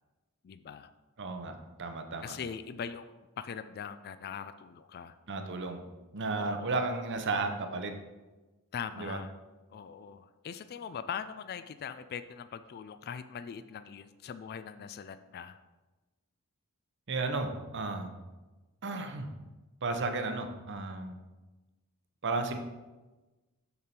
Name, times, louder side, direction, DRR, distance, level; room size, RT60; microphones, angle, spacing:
voice 1, 0.4-0.9 2.2-5.2 6.4-6.8 8.7-9.3 9.7-15.6, left 7 dB, 45° left, 13 dB, 0.3 m, -41 dB
voice 2, 1.2-1.5 1.8-2.4 5.3-5.8 6.1-7.9 9.0-9.2 17.1-18.2 18.8-19.3 19.8-21.2 22.2-22.6, right 3 dB, 55° right, 6 dB, 0.8 m, -33 dB
6.9 x 6.8 x 4.3 m, 1.2 s
head